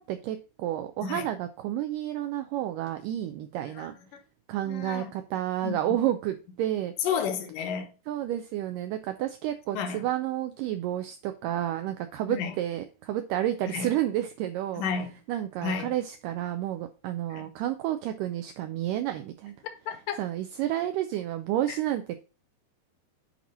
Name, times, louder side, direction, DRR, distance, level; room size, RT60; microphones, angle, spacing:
voice 1, 0.0-3.9 4.5-6.9 8.1-14.8 15.3-19.6 20.2-22.2, right 12 dB, 80° right, 2.0 m, -30 dB
voice 2, 4.6-5.1 5.6-5.7 7.0-7.9 9.7-10.0 12.3-12.5 13.7-13.9 14.8-15.1 15.6-15.9 17.3-17.4 19.9-20.2, left 6 dB, 70° left, 2.3 m, -31 dB
8.5 x 2.9 x 5.4 m
omnidirectional pair, 4.2 m